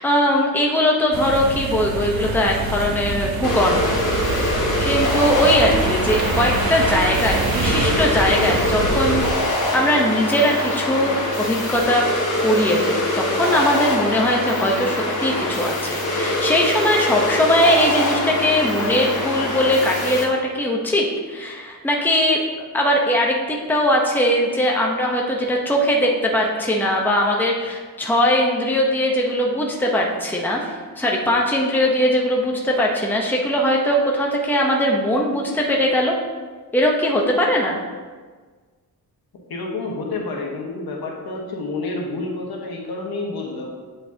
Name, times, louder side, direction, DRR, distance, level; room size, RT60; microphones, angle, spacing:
voice 1, 0.0-4.0 4.4-9.2 9.6-12.0 12.4-22.4 22.7-36.2 36.7-37.8, equal, 5° left, -1 dB, 0.8 m, -20 dB
sound 1, 1.1-9.3, right 3 dB, 75° right, 1.0 m, -25 dB
sound 2, 3.4-20.2, left 1 dB, 55° left, 1.8 m, -24 dB
voice 2, 39.5-43.8, left 3 dB, 80° left, 0 dB, 1.4 m, -29 dB
7.8 x 7.0 x 2.8 m, 1.5 s
wide cardioid pair, 145°, 37 cm